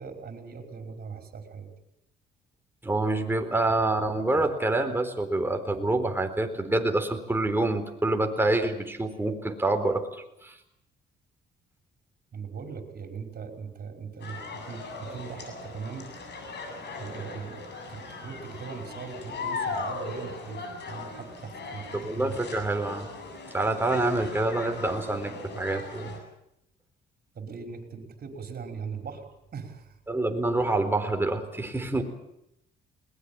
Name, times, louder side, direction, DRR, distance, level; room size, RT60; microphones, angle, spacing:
voice 1, 0.0-1.7 3.4-3.5 12.3-16.1 17.0-17.6 17.9-20.6 20.9-22.4 27.3-29.3 29.5-29.9, right 5 dB, 50° right, 4 dB, 5.6 m, -40 dB
voice 2, 2.8-10.6 21.9-23.1 23.5-26.2 30.1-32.0, right 2 dB, 10° right, 5 dB, 4.1 m, -27 dB
sound 1, 14.2-26.2, left 3 dB, 60° left, 7.7 m, -39 dB
21.0 x 20.0 x 8.8 m, 0.80 s
cardioid pair, 90°, 20 cm